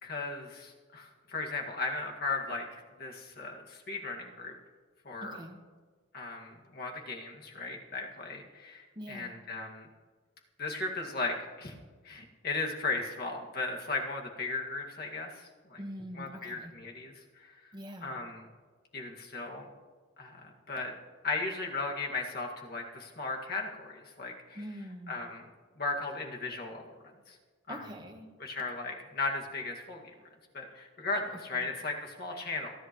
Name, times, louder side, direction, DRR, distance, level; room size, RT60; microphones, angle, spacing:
voice 1, 0.0-4.5 5.1-5.4 6.1-9.9 10.6-11.7 12.0-15.8 16.1-17.5 18.0-18.4 18.9-19.7 20.2-20.9 21.2-24.6 25.1-25.4 25.8-26.8 27.3-27.4 27.7-27.9 28.4-30.0 30.5-32.7, left 3 dB, 50° left, 0 dB, 2.0 m, -36 dB
voice 2, 5.2-5.6 8.9-9.4 15.8-16.7 17.7-18.1 24.5-25.1 27.7-28.3 31.5-31.7, equal, 20° right, 4 dB, 1.2 m, -44 dB
30.0 x 10.0 x 3.1 m, 1.5 s
head